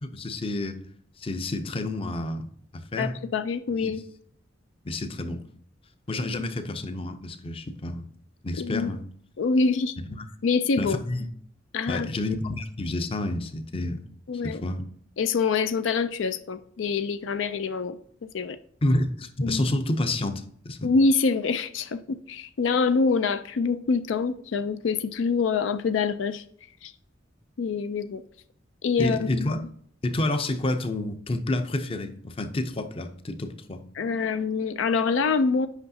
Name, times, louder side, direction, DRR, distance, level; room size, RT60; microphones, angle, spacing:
voice 1, 0.0-0.8 1.2-3.1 3.8-4.0 4.8-5.4 6.1-8.1 8.4-9.0 10.1-10.3 10.8-11.3 11.9-14.0 14.4-14.8 18.8-20.9 29.0-29.7 30.0-33.8, left 1 dB, 30° left, 8 dB, 0.6 m, -29 dB
voice 2, 3.0-4.0 8.6-8.9 9.4-10.0 10.4-11.0 11.7-12.1 14.3-14.6 15.2-18.0 18.3-18.6 19.4-19.6 20.8-26.4 26.8-26.9 27.6-28.2 28.8-29.5 34.0-35.7, left 4 dB, 85° left, 11 dB, 0.4 m, -25 dB
8.1 x 5.6 x 2.7 m, 0.63 s
head